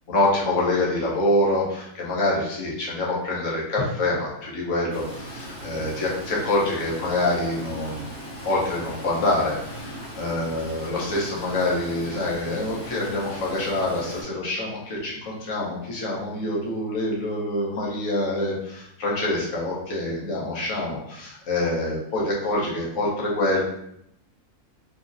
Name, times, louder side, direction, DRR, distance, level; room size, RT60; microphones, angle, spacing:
voice 1, 0.1-8.0 8.4-23.6, left 1 dB, 60° left, -5 dB, 1.1 m, -26 dB
Stream, 4.9-14.2, equal, 40° left, 0.9 m, -38 dB
3.8 x 2.1 x 2.5 m, 0.76 s
omnidirectional pair, 1.6 m